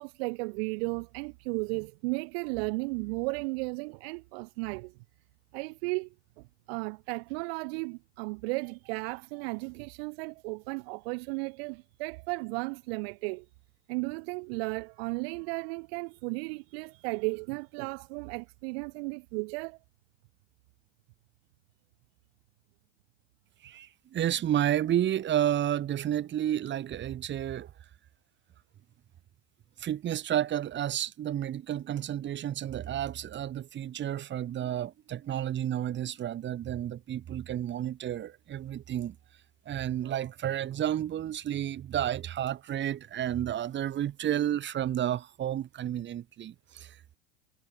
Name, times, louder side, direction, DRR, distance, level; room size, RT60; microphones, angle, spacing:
voice 1, 0.0-4.9 5.5-13.5 13.9-19.8, right 30 dB, 60° right, 1.0 m, -35 dB
voice 2, 23.6-27.7 29.8-39.2 39.7-47.2, right 11 dB, 30° right, 1.9 m, -31 dB
hypercardioid pair, 105°, 34 cm